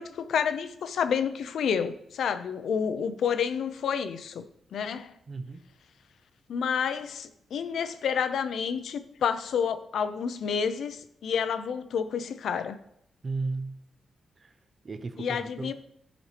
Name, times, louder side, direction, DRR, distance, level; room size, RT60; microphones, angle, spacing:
voice 1, 0.0-4.4 4.7-5.1 6.5-12.8 15.2-15.7, left 7 dB, 80° left, 0.6 m, -29 dB
voice 2, 5.3-5.6 13.2-13.8 14.4-14.5 14.8-15.7, right 3 dB, 35° right, 0.6 m, -34 dB
13.5 x 5.2 x 3.3 m
wide cardioid pair, 140°, 0 cm